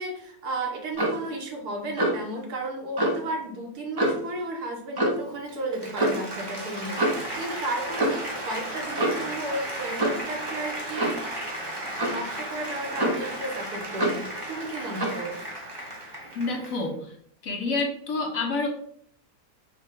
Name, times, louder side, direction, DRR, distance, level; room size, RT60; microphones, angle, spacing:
voice 1, 0.0-11.3 12.0-15.4, right 2 dB, 75° right, 1 dB, 1.5 m, -33 dB
Clock, 0.9-1.2 2.0-2.3 3.0-3.2 4.0-4.3 5.0-5.3 6.0-6.2 7.0-7.3 8.0-8.3 9.0-9.3 10.0-10.2 11.0-11.3 12.0-12.2 13.0-13.4 14.0-14.3 15.0-15.2, right 1 dB, 40° right, 0.3 m, -26 dB
Applause, 5.3-16.9, right 1 dB, 20° right, 0.8 m, -35 dB
voice 2, 16.3-17.1 17.4-18.7, left 3 dB, 65° left, 1 dB, 1.2 m, -28 dB
5.3 x 2.2 x 3.7 m, 0.62 s
omnidirectional pair, 1.7 m